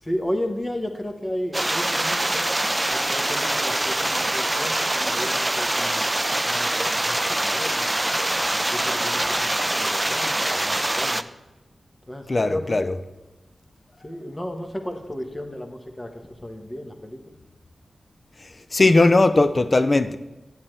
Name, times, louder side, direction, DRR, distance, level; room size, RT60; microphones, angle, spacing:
voice 1, 0.0-2.5 2.9-6.1 6.4-7.9 8.5-11.2 12.1-12.9 14.0-16.1 16.4-17.2, left 1 dB, 20° left, 1.2 m, -33 dB
sound 1, 1.5-11.2, right 1 dB, 20° right, 0.3 m, -24 dB
voice 2, 12.3-13.0 18.4-20.2, left 2 dB, 45° left, 0.5 m, -19 dB
8.6 x 7.5 x 3.3 m
cardioid pair, 50°, 0 cm